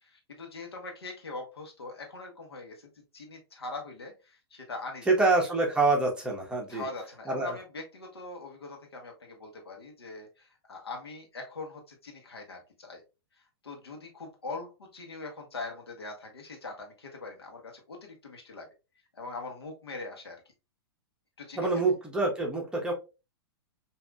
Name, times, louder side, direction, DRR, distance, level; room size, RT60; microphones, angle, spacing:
voice 1, 0.0-5.3 6.7-13.0 13.6-18.7 19.1-20.4 21.4-21.9, left 3 dB, 75° left, 2 dB, 1.2 m, -42 dB
voice 2, 5.1-6.9 7.3-7.5 21.6-22.9, right 3 dB, 5° right, -1 dB, 1.1 m, -26 dB
5.0 x 2.7 x 2.3 m, 0.28 s
figure-of-eight pair, 105°, 13 cm